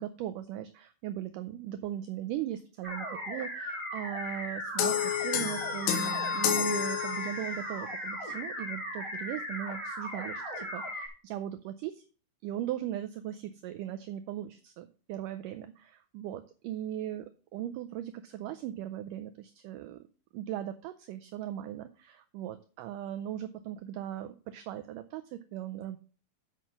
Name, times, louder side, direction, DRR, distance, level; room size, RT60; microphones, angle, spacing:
voice 1, 0.0-12.0 12.4-17.3 17.5-20.1 20.3-26.0, right 12 dB, 85° right, 9 dB, 1.9 m, -38 dB
sound 1, 2.8-11.1, equal, 10° left, 3.3 m, -37 dB
sound 2, 4.8-7.7, left 9 dB, 85° left, 3.0 m, -30 dB
8.2 x 5.8 x 5.8 m, 0.38 s
omnidirectional pair, 4.3 m